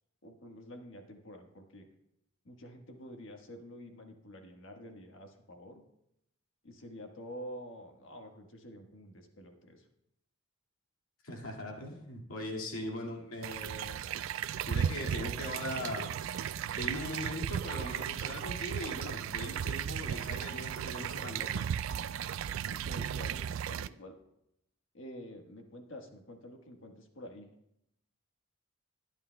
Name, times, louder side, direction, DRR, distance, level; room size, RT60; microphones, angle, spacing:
voice 1, 0.2-1.9 2.4-5.8 6.6-9.8 22.6-24.2 24.9-27.5, equal, 60° left, 3 dB, 1.4 m, -48 dB
voice 2, 11.2-14.2 14.7-21.7, left 1 dB, 90° left, 0 dB, 2.2 m, -40 dB
sound 1, 13.4-23.9, right 8 dB, 70° right, 0.3 m, -35 dB
21.0 x 10.5 x 2.3 m, 0.78 s
head